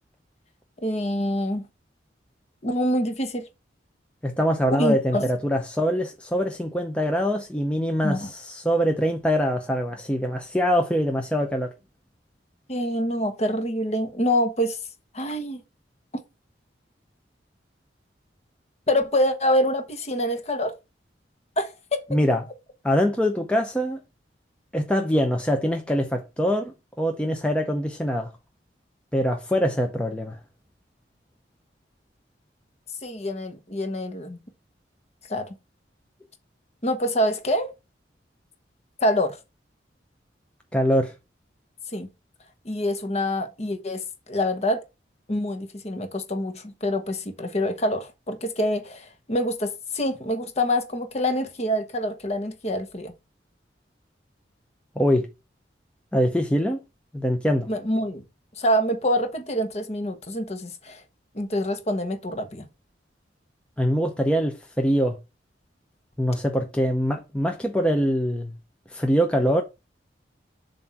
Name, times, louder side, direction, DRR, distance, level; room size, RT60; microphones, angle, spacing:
voice 1, 0.8-1.6 2.6-3.4 4.8-5.3 8.0-8.3 12.7-14.8 15.1-15.6 18.9-20.7 21.6-22.0 33.0-34.4 35.3-35.5 36.8-37.7 39.0-39.4 41.9-42.1 42.6-44.8 45.3-53.1 57.7-58.2 58.6-61.0 61.3-62.7, equal, 35° left, 1.0 m, -26 dB
voice 2, 4.2-11.7 22.1-22.4 22.8-24.0 24.7-28.3 29.1-30.4 40.7-41.1 55.0-55.3 56.1-56.8 57.1-57.7 63.8-65.2 66.2-68.5 68.9-69.6, equal, 5° left, 0.6 m, -23 dB
7.3 x 2.6 x 5.7 m
head